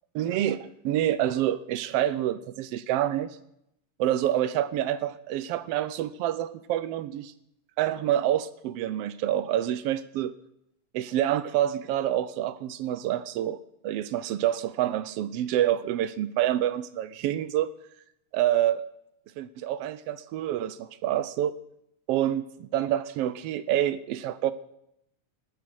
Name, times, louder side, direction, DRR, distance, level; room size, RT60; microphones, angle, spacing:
voice 1, 0.1-3.4 4.0-7.3 7.8-10.4 10.9-17.7 18.3-18.8 19.4-21.5 22.1-24.5, right 12 dB, 80° right, 14 dB, 1.4 m, -27 dB
18.0 x 9.4 x 6.4 m, 0.79 s
omnidirectional pair, 3.4 m